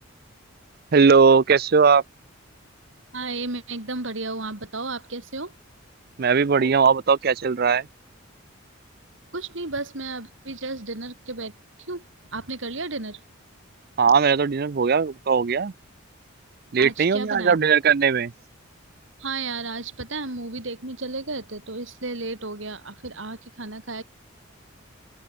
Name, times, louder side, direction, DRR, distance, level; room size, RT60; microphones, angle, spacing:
voice 1, 0.9-2.0 6.2-7.9 14.0-15.7 16.7-18.3, right 5 dB, 45° right, 0.5 m, -19 dB
voice 2, 3.1-5.6 9.3-11.5 11.9-12.0 12.3-13.2 16.8-17.7 19.2-24.0, right 3 dB, 60° right, 3.0 m, -33 dB
open air
head